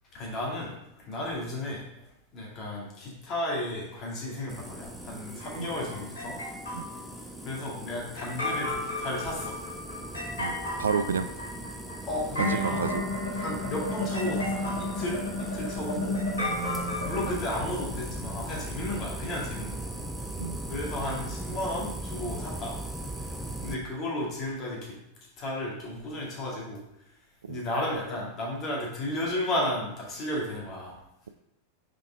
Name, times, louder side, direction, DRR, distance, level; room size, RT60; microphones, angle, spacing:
voice 1, 0.1-2.1 2.3-6.4 7.4-9.6 12.0-12.9 13.4-16.2 17.0-19.9 20.7-22.8 23.1-23.3 23.6-25.0 25.4-26.8 27.5-31.0, left 1 dB, 35° left, -3 dB, 2.3 m, -33 dB
sound 1, 4.5-23.8, right 1 dB, 5° right, 0.7 m, -39 dB
sound 2, 5.4-7.0 8.2-17.3, left 1 dB, 70° left, 2.0 m, -32 dB
voice 2, 10.4-11.3 12.4-13.0 20.4-20.6 27.4-27.6, right 6 dB, 70° right, 12 dB, 0.3 m, -30 dB
6.0 x 4.9 x 3.5 m, 0.82 s
figure-of-eight pair, 90°, 0 cm